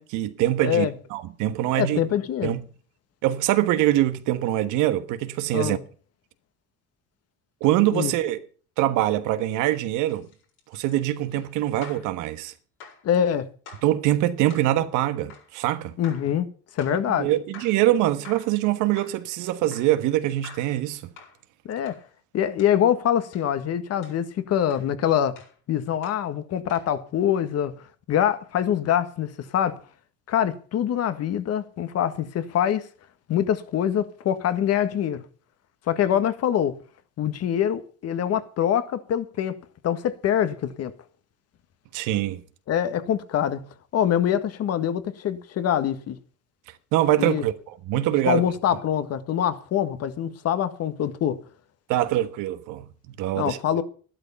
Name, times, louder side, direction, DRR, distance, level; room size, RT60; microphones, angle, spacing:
voice 1, 0.0-2.0 2.4-2.6 3.2-5.8 7.6-8.4 8.8-10.3 10.7-12.5 13.8-16.0 17.1-21.1 41.9-42.4 46.9-47.5 47.9-48.4 51.9-53.6, right 14 dB, 80° right, 1.4 m, -24 dB
voice 2, 0.6-0.9 1.7-2.5 5.5-5.8 7.9-8.1 13.0-13.5 16.0-16.5 16.7-17.3 21.6-21.9 22.3-25.3 25.7-29.7 30.3-32.9 33.3-35.2 35.9-36.7 37.2-39.6 39.8-40.9 42.7-43.6 43.9-46.2 47.2-47.4 48.2-51.3 53.3-53.8, left 10 dB, 55° left, 1.7 m, -24 dB
sound 1, 10.0-12.1 12.8-13.1 13.7-13.9 14.5-14.7 15.3-15.5 16.0-16.3 16.8-17.0 17.5-17.8 18.2-18.6 19.0-19.2 19.7-20.0 20.4-20.8 21.2-21.4 21.9-22.1 22.6-22.8 23.3-23.5 24.0-24.2 24.7-24.9 25.4-25.6 26.0-26.3 26.7-26.9, left 6 dB, 85° left, 7.8 m, -47 dB
13.0 x 12.0 x 5.6 m
cardioid pair, 120°, 31 cm